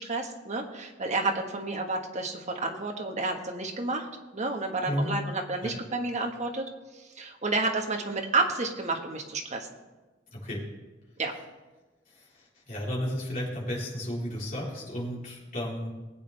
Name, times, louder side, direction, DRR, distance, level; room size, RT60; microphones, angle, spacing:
voice 1, 0.0-4.1 4.3-6.6 6.9-9.7 11.2-11.3, right 3 dB, 40° right, 2 dB, 1.5 m, -30 dB
voice 2, 10.3-10.6 12.1-15.9, equal, 45° left, -6 dB, 4.0 m, -33 dB
19.5 x 8.7 x 3.4 m, 1.2 s
head